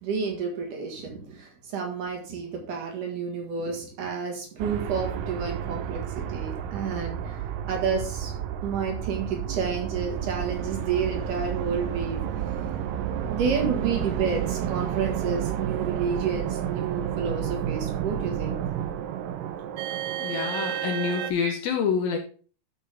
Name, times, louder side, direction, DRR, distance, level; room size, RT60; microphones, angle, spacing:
voice 1, 0.0-6.0 6.3-8.3 8.6-12.2 13.3-18.6 20.3-20.5 21.4-21.5, right 5 dB, 60° right, 2 dB, 2.8 m, -30 dB
sound 1, 4.6-21.3, right 10 dB, 80° right, 2.0 m, -31 dB
voice 2, 20.2-22.2, left 6 dB, 75° left, 3 dB, 2.4 m, -27 dB
13.0 x 5.3 x 3.4 m, 0.39 s
omnidirectional pair, 4.7 m